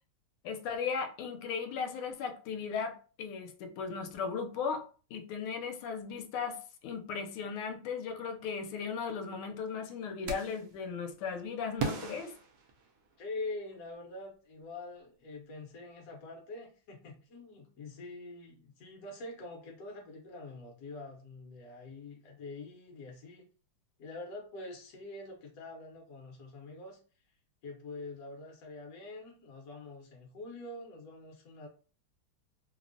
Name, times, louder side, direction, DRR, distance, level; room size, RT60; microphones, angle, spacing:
voice 1, 0.4-4.9 5.1-12.3, left 6 dB, 80° left, 1.4 m, -37 dB
sound 1, 10.3-10.7 11.8-13.3, right 4 dB, 80° right, 0.8 m, -38 dB
voice 2, 13.2-23.4 24.0-27.0 27.6-31.7, left 2 dB, 65° left, 0.9 m, -45 dB
3.4 x 2.1 x 2.5 m
omnidirectional pair, 2.4 m